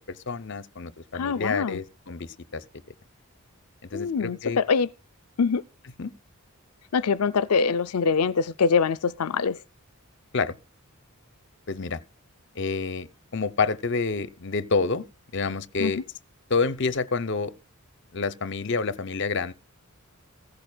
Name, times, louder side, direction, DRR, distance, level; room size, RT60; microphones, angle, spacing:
voice 1, 0.1-2.3 2.5-2.6 3.9-4.6 6.0-6.1 10.3-10.5 11.7-12.0 12.6-13.1 13.3-15.1 15.3-16.0 16.5-17.5 18.1-19.5, left 4 dB, 55° left, 0.8 m, -28 dB
voice 2, 1.1-1.8 3.9-4.9 5.4-5.6 6.9-9.6 15.8-16.0, left 5 dB, 85° left, 0.5 m, -24 dB
15.5 x 15.5 x 2.3 m
head